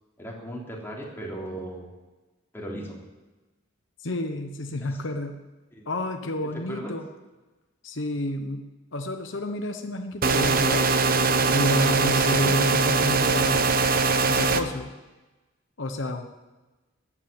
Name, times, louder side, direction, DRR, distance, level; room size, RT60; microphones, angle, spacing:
voice 1, 0.2-1.9 2.5-3.0 4.8-5.0 5.7-5.8 6.5-6.9 12.3-12.5, right 1 dB, 10° left, -3 dB, 3.4 m, -37 dB
voice 2, 4.0-5.4 5.9-7.0 7.8-8.7 8.9-10.9 11.5-13.7 14.3-14.9 15.8-16.3, left 1 dB, 70° left, 5 dB, 1.1 m, -30 dB
sound 1, 10.2-14.6, right 4 dB, 45° right, 0.9 m, -22 dB
14.0 x 9.9 x 9.1 m, 1.1 s
head